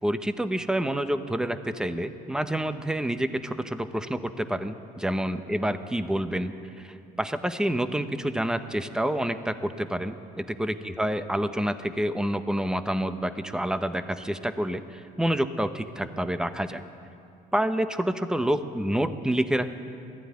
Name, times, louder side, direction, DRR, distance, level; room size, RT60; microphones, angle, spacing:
voice 1, 0.0-16.8 17.5-19.7, right 1 dB, 5° right, 10 dB, 1.0 m, -28 dB
19.0 x 14.5 x 9.6 m, 2.6 s
cardioid pair, 110°, 17 cm